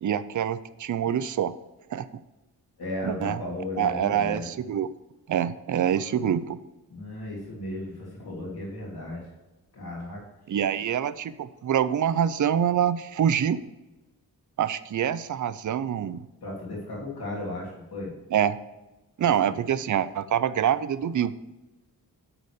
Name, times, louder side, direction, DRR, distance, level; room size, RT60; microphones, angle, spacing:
voice 1, 0.0-1.5 1.9-2.1 3.0-3.4 3.8-4.9 5.3-6.6 10.5-13.6 14.6-16.2 18.3-18.6 19.2-21.3, right 9 dB, 55° right, 14 dB, 0.5 m, -25 dB
voice 2, 2.8-4.4 6.9-9.2 9.7-10.2 16.4-18.1 19.2-19.7, left 1 dB, 80° left, -4 dB, 3.1 m, -35 dB
10.0 x 4.1 x 6.5 m, 1.1 s
cardioid pair, 75°, 37 cm